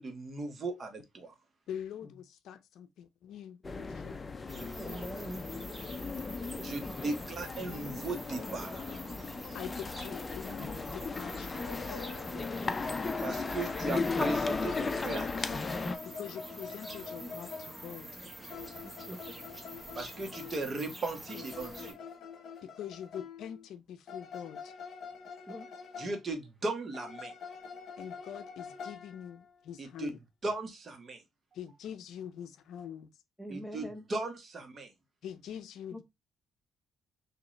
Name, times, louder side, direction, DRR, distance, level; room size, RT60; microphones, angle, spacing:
voice 1, 0.0-1.3 6.6-9.0 13.2-15.6 19.9-22.0 26.0-27.3 29.8-30.1 30.4-31.2 33.5-34.9, right 3 dB, 40° right, 1.1 m, -37 dB
voice 2, 1.7-4.2 9.5-11.7 16.0-18.1 22.6-24.7 28.0-30.2 31.5-33.1 35.2-36.0, left 9 dB, 80° left, 0.5 m, -44 dB
sound 1, 3.6-15.9, left 4 dB, 30° left, 0.5 m, -36 dB
sound 2, 4.5-21.9, right 1 dB, 15° right, 1.2 m, -47 dB
voice 3, 4.8-5.5 6.4-7.1 12.3-12.8 18.8-19.4 25.5-25.7 33.4-34.0 35.9-36.0, equal, 5° left, 0.8 m, -44 dB
sound 3, 11.5-15.2 15.7-18.0 18.5-20.8 21.3-23.7 24.1-26.3 26.9-29.6, left 5 dB, 60° left, 1.0 m, -45 dB
3.6 x 2.9 x 3.0 m
cardioid pair, 90°, 0 cm